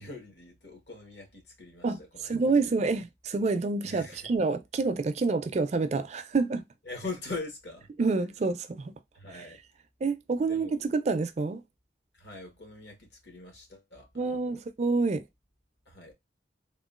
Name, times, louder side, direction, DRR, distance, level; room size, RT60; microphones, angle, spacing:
voice 1, 0.0-1.9 2.1-2.3 2.6-2.7 3.8-4.3 6.8-7.9 9.1-9.6 10.4-10.8 12.2-14.6 15.8-16.1, left 3 dB, 65° left, 1.4 m, -42 dB
voice 2, 1.8-6.6 8.0-8.9 9.3-9.4 10.0-11.6 14.2-15.3, right 3 dB, 40° right, 0.3 m, -28 dB
3.6 x 2.3 x 2.4 m
head